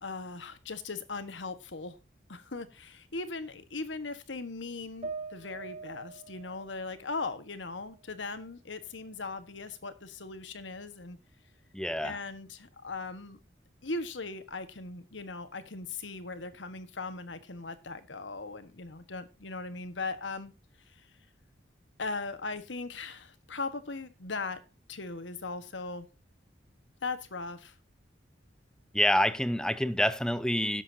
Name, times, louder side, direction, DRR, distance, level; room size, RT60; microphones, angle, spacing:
voice 1, 0.0-2.0 2.3-11.2 12.0-13.4 13.8-20.5 20.9-21.1 22.0-24.6 24.9-26.1 27.0-27.8, left 3 dB, 85° left, 1.4 m, -39 dB
sound 1, 5.0-8.4 8.8-9.9, right 4 dB, 35° right, 1.7 m, -45 dB
voice 2, 11.7-12.2 28.9-30.8, left 1 dB, 5° left, 0.7 m, -27 dB
17.0 x 7.5 x 2.8 m
head